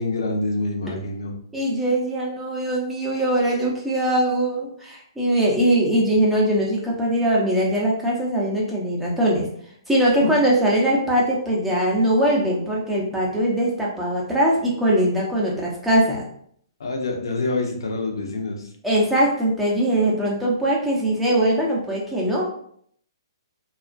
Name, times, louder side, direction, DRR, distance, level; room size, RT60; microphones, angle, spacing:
voice 1, 0.0-1.3 10.2-10.3 16.8-18.6, left 3 dB, 70° left, 2 dB, 0.6 m, -26 dB
voice 2, 1.5-9.5 9.9-16.3 18.8-22.4, right 1 dB, 5° right, -4 dB, 0.6 m, -21 dB
2.3 x 2.1 x 2.5 m, 0.64 s
hypercardioid pair, 125°, 2 cm